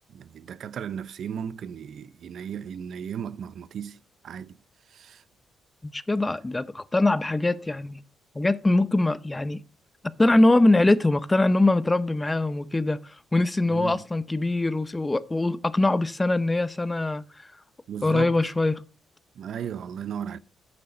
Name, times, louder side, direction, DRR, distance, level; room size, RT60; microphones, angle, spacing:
voice 1, 0.1-4.6 4.9-5.2 13.7-14.0 17.9-18.4 19.4-20.4, right 8 dB, 65° right, 0.6 m, -35 dB
voice 2, 5.8-8.0 8.3-9.6 10.2-17.2 18.0-18.8, left 2 dB, 15° left, 0.6 m, -23 dB
8.6 x 6.8 x 5.4 m
cardioid pair, 90°, 0 cm